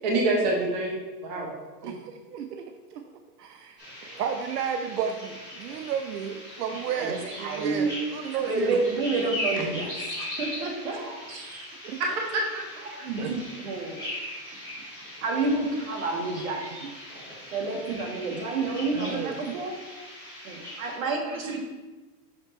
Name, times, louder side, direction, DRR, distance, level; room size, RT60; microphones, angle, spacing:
voice 1, 0.0-1.5 1.8-1.9 12.0-12.6 12.9-13.0 21.4-21.5, right 2 dB, 25° right, -1 dB, 0.5 m, -27 dB
voice 2, 1.6-3.0 3.4-8.8 11.8-12.0 13.2-13.4 16.8-16.9 18.9-19.4, right 7 dB, 75° right, 6 dB, 0.6 m, -33 dB
sound 1, 3.8-21.0, left 1 dB, 10° right, 1.7 m, -39 dB
voice 3, 6.9-7.9 8.2-11.7 12.8-14.0 15.2-16.6 17.5-19.7 20.4-21.6, right 3 dB, 55° right, 1 dB, 1.5 m, -30 dB
6.4 x 5.3 x 3.1 m, 1.2 s
supercardioid pair, 170°, 48 cm